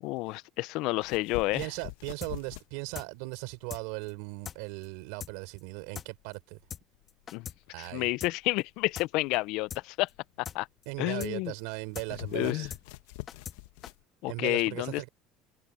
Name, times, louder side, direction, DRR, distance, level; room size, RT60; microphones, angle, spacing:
voice 1, 0.0-1.7 7.3-7.5 7.8-10.1 10.5-10.7 11.0-11.5 12.3-12.7 14.2-15.0, left 21 dB, 70° left, 0.5 m, -30 dB
sound 1, 1.0-14.0, left 17 dB, 90° left, 1.0 m, -47 dB
voice 2, 1.5-6.6 7.7-8.1 10.9-12.7 14.3-15.1, right 28 dB, 80° right, 4.1 m, -38 dB
sound 2, 2.2-2.3 2.6-2.7 2.9-3.1 3.3-3.4 3.7-4.1 4.4-4.6 4.8-4.9 5.2-5.3 5.6-5.7 5.9-6.1 6.3-6.4 6.7-6.8 7.1-7.6 7.8-7.9 8.2-8.3 8.6-8.7 8.9-9.1 9.3-9.4 9.7-9.8 10.1-10.2 10.4-10.6 10.8-10.9 11.2-11.3 11.6-11.7 11.9-12.1 12.3-12.4 12.7-12.8 13.1-13.6 13.8-13.9, left 8 dB, 35° left, 2.0 m, -41 dB
supercardioid pair, 120°, 0 cm